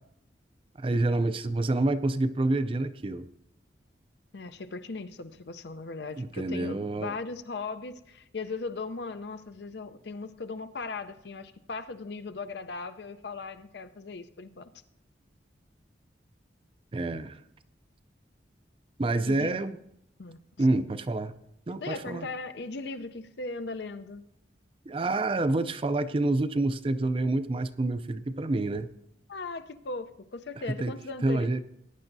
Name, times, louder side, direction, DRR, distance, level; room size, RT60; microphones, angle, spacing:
voice 1, 0.8-3.3 6.2-7.2 16.9-17.4 19.0-19.8 20.6-21.3 21.7-22.3 24.9-28.9 30.8-30.9 31.2-31.6, right 2 dB, 30° right, 12 dB, 0.4 m, -27 dB
voice 2, 4.3-14.7 19.3-19.5 20.2-20.8 21.8-24.2 29.3-31.6, left 3 dB, 70° left, 11 dB, 0.6 m, -38 dB
17.5 x 9.8 x 2.7 m, 0.77 s
head